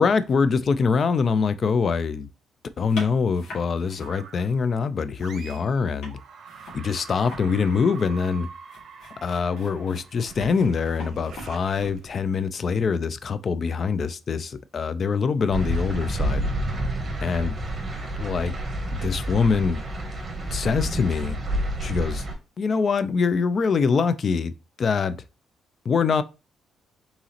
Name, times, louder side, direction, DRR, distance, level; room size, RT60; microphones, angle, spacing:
voice 1, 0.0-2.3 2.8-6.2 6.7-8.5 9.2-16.5 17.2-17.5 18.2-18.5 19.0-19.8 20.5-21.4 21.8-22.3 22.6-24.5 24.8-25.2 25.9-26.2, left 5 dB, 50° left, 0.3 m, -24 dB
sound 1, 2.9-4.7 5.0-12.2, left 2 dB, 65° left, 2.2 m, -43 dB
sound 2, 4.0-4.6 5.2-5.8 6.1-12.5, right 6 dB, 60° right, 0.7 m, -45 dB
sound 3, 15.5-22.3, right 1 dB, 30° right, 1.3 m, -29 dB
4.0 x 3.7 x 2.9 m
cardioid pair, 90°, 0 cm